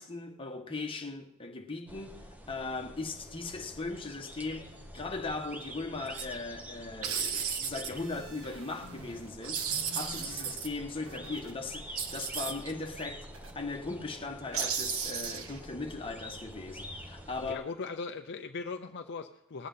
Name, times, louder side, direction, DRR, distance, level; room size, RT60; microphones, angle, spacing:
voice 1, 0.0-13.2 13.5-17.7, left 3 dB, 25° left, 1.4 m, -38 dB
sound 1, 1.9-17.5, equal, 10° right, 1.1 m, -47 dB
sound 2, 6.1-6.3 7.0-7.9 9.4-10.7 12.0-12.7 14.5-15.6, right 7 dB, 80° right, 1.3 m, -34 dB
sound 3, 7.7-9.3 9.6-11.5 11.8-12.5 13.0-13.1 13.3-13.5, right 1 dB, 65° right, 1.6 m, -50 dB
voice 2, 17.5-19.7, left 4 dB, 55° left, 0.6 m, -39 dB
20.0 x 8.5 x 5.6 m
head